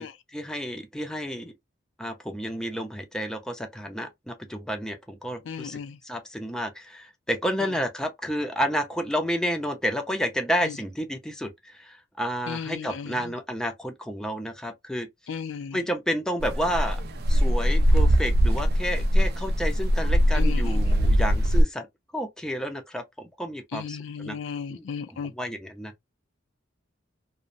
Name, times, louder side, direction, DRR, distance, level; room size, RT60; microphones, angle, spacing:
voice 1, 0.0-1.5 2.0-5.8 6.0-15.1 15.7-17.0 17.3-21.9 22.1-24.4 24.7-25.9, equal, 5° left, 0.5 m, -31 dB
voice 2, 5.5-6.0 10.6-10.7 12.5-13.3 15.3-15.8 20.3-20.9 23.7-25.3, left 6 dB, 75° left, 0.4 m, -35 dB
sound 1, 16.4-21.6, equal, 55° right, 0.5 m, -21 dB
2.5 x 2.1 x 2.5 m
head